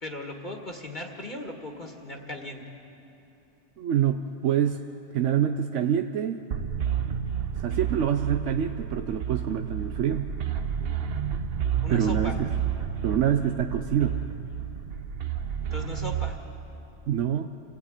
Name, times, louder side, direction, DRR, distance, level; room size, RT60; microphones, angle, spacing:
voice 1, 0.0-2.6 11.8-12.4 15.7-16.4, left 1 dB, 40° left, 1 dB, 1.9 m, -37 dB
voice 2, 3.8-4.8 5.1-6.4 7.6-10.3 11.9-12.5 13.0-14.2 17.1-17.5, right 9 dB, 85° right, 7 dB, 1.1 m, -26 dB
sound 1, 6.5-16.3, right 8 dB, 60° right, 1.1 m, -30 dB
26.5 x 17.5 x 8.9 m, 3.0 s
omnidirectional pair, 1.2 m